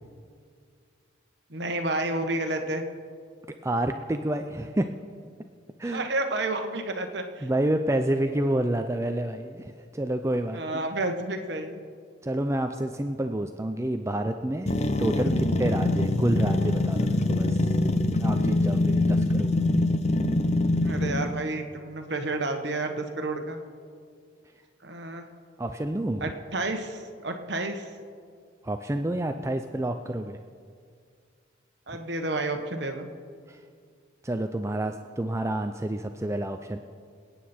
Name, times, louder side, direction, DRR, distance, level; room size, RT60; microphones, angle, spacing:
voice 1, 1.5-2.8 5.9-7.5 10.5-11.8 20.8-23.6 24.8-25.3 26.2-27.9 31.9-33.1, right 2 dB, 60° right, 5 dB, 1.2 m, -30 dB
voice 2, 3.6-4.9 5.8-6.1 7.4-10.8 12.2-17.7 18.2-19.6 25.6-26.2 28.6-30.4 33.5-33.6 34.2-36.8, right 1 dB, 15° right, 6 dB, 0.4 m, -29 dB
sound 1, 14.7-21.4, left 2 dB, 35° left, 0.6 m, -24 dB
26.5 x 9.3 x 4.4 m, 2.1 s
head